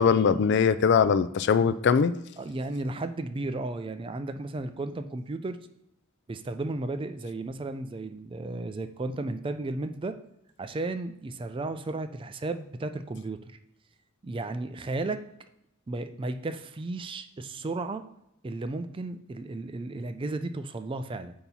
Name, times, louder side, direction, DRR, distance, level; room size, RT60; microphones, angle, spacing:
voice 1, 0.0-2.1, left 6 dB, 55° left, 13 dB, 0.3 m, -21 dB
voice 2, 2.4-5.6 6.3-10.2 10.6-13.5 14.2-15.2 15.9-18.0 18.4-21.3, right 2 dB, 25° right, 9 dB, 0.3 m, -34 dB
8.2 x 2.9 x 5.5 m, 0.80 s
head